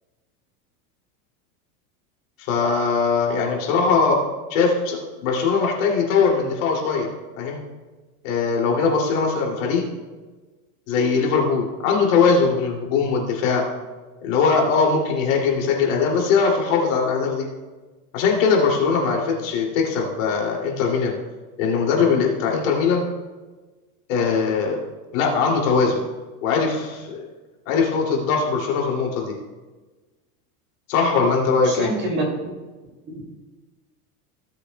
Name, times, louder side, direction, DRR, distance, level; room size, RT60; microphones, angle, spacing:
voice 1, 2.4-4.2 4.5-7.1 7.4-7.6 8.2-9.8 10.9-13.6 14.2-17.5 18.1-21.2 21.6-23.0 24.1-24.8 25.1-26.0 26.4-27.2 27.7-29.3 30.9-31.9, left 5 dB, 60° left, -1 dB, 2.7 m, -21 dB
voice 2, 31.6-32.3 33.1-33.3, right 2 dB, 25° right, -1 dB, 2.5 m, -26 dB
17.0 x 7.8 x 2.2 m, 1.3 s
supercardioid pair, 155°, 44 cm